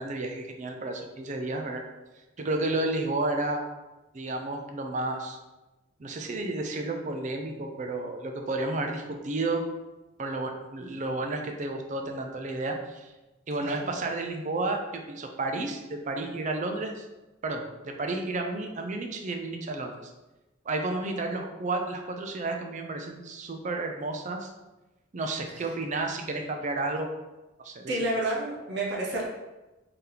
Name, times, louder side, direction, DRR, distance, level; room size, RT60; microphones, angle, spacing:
voice 1, 0.0-1.8 2.4-3.6 4.1-5.4 6.0-9.6 10.2-13.1 13.5-17.1 17.4-20.1 20.7-24.5 25.1-27.1 27.6-27.9, right 2 dB, 35° right, 3 dB, 0.4 m, -31 dB
voice 2, 27.9-29.3, right 1 dB, 55° right, -3 dB, 0.8 m, -30 dB
3.4 x 2.8 x 3.8 m, 1.1 s
head